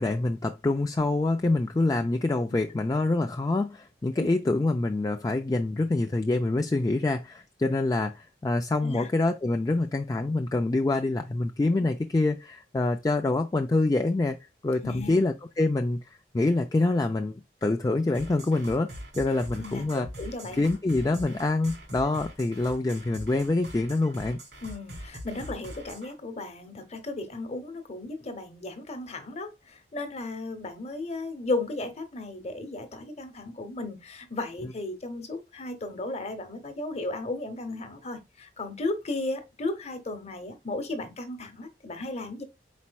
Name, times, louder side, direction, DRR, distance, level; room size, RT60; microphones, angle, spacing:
voice 1, 0.0-14.4 14.6-17.3 17.6-20.1 20.5-24.4, left 2 dB, 20° left, 0.3 m, -26 dB
voice 2, 14.8-15.2 19.6-20.6 24.6-42.4, left 2 dB, 40° left, 0.9 m, -35 dB
sound 1, 18.1-26.1, equal, 80° right, 2.7 m, -42 dB
4.3 x 4.2 x 2.2 m
head